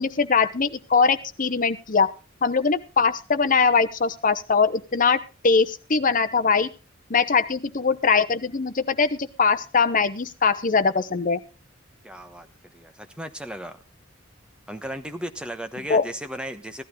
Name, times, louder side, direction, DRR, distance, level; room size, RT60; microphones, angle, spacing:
voice 1, 0.0-2.1 2.4-6.7 7.1-11.4 15.9-16.1, left 5 dB, 45° left, 10 dB, 0.9 m, -21 dB
voice 2, 12.0-12.5 12.7-13.8 14.7-16.8, equal, 5° right, 8 dB, 1.1 m, -35 dB
16.0 x 12.0 x 3.9 m, 0.32 s
head